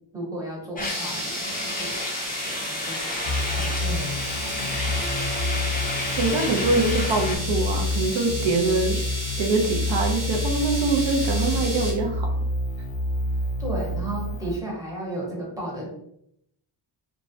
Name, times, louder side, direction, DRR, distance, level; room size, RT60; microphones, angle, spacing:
voice 1, 0.1-3.0 3.5-5.4 13.6-15.9, right 1 dB, 5° right, -4 dB, 0.8 m, -35 dB
sound 1, 0.8-7.4, left 2 dB, 20° left, 0.4 m, -31 dB
sound 2, 0.8-11.9, equal, 80° right, 1.1 m, -33 dB
sound 3, 3.2-14.6, left 2 dB, 65° left, 0.6 m, -28 dB
voice 2, 6.2-9.0 9.4-12.3, right 3 dB, 65° right, 3 dB, 0.6 m, -24 dB
2.3 x 2.0 x 2.6 m, 0.75 s
wide cardioid pair, 130°, 49 cm